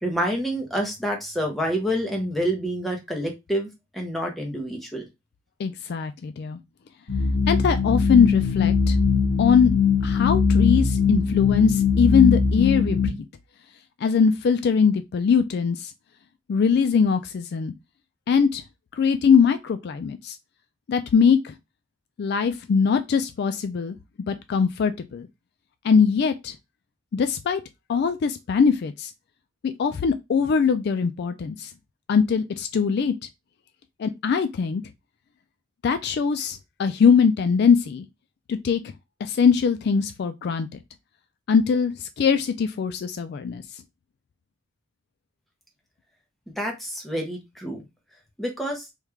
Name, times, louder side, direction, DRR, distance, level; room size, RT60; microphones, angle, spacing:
voice 1, 0.0-5.1 46.6-47.8 48.4-48.9, equal, ahead, 0.8 m, -28 dB
voice 2, 5.6-6.6 7.5-9.0 9.4-9.7 10.0-13.3 14.0-15.9 16.5-17.7 18.3-18.6 19.0-20.3 20.9-21.5 22.2-24.0 24.3-25.3 25.8-26.5 27.1-27.6 27.9-29.1 29.6-31.7 32.1-33.1 34.0-34.8 35.8-38.1 38.5-38.8 39.2-40.7 41.5-43.6, left 6 dB, 50° left, 0.3 m, -21 dB
sound 1, 7.1-13.1, left 5 dB, 80° left, 1.6 m, -21 dB
3.2 x 2.3 x 3.3 m
head